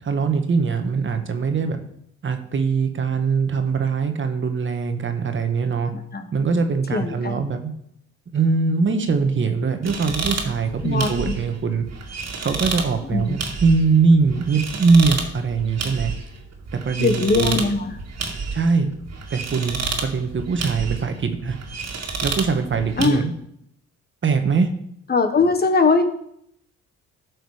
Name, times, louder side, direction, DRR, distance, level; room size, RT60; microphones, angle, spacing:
voice 1, 0.0-1.8 2.2-5.9 6.3-7.7 8.3-11.9 12.4-16.1 16.8-17.6 18.5-18.9 19.3-21.6 22.2-23.3 24.2-24.7, right 4 dB, 40° right, 6 dB, 1.4 m, -21 dB
voice 2, 6.9-7.3 10.8-11.3 13.1-13.4 17.0-17.9 23.0-23.2 25.1-26.0, left 4 dB, 30° left, 7 dB, 1.3 m, -20 dB
sound 1, 9.8-23.1, right 4 dB, 60° right, 2.1 m, -30 dB
12.5 x 6.5 x 5.0 m, 0.73 s
cardioid pair, 90°, 30 cm